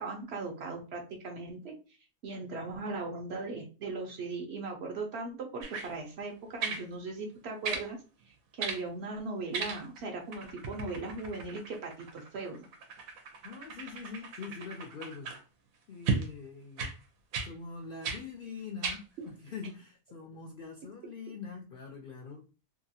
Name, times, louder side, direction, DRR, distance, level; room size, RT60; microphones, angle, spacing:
voice 1, 0.0-1.7 2.2-8.0 8.3-12.6, right 3 dB, 60° right, 2 dB, 0.8 m, -38 dB
sound 1, 5.6-5.9 6.6-6.9 7.6-7.9 8.6-8.8 9.5-10.0 10.3-15.4 16.1-16.3 16.8-17.0 17.3-17.5 18.0-18.2 18.8-19.0 19.6-19.7, right 5 dB, 90° right, 1.1 m, -36 dB
voice 2, 13.4-15.3 15.9-16.9 17.4-22.5, left 5 dB, 65° left, 1 dB, 0.5 m, -44 dB
2.8 x 2.4 x 2.7 m, 0.34 s
omnidirectional pair, 1.4 m